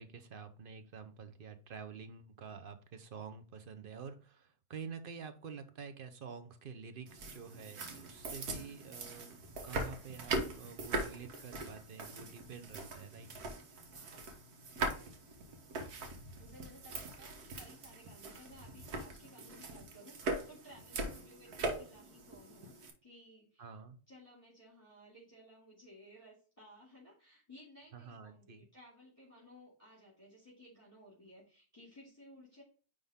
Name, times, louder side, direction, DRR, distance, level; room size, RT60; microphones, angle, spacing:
voice 1, 0.0-13.3 23.6-24.0 27.9-28.7, right 6 dB, 45° right, 9 dB, 0.8 m, -48 dB
sound 1, 7.1-22.9, right 2 dB, 80° right, 1.7 m, -41 dB
voice 2, 14.7-15.4 16.3-22.8 23.0-23.8 24.1-32.6, equal, 20° left, -5 dB, 2.5 m, -58 dB
9.5 x 3.6 x 3.6 m, 0.39 s
omnidirectional pair, 1.6 m